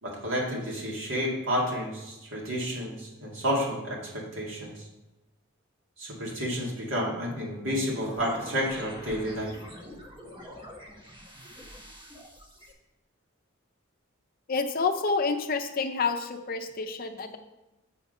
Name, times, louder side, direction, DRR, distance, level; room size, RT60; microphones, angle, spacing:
voice 1, 0.0-4.8 6.0-9.5, equal, 70° right, -3 dB, 2.3 m, -30 dB
sound 1, 7.7-12.7, equal, 25° right, 0.9 m, -46 dB
voice 2, 14.5-17.4, left 4 dB, 45° left, 5 dB, 0.5 m, -28 dB
7.1 x 4.8 x 5.4 m, 0.98 s
head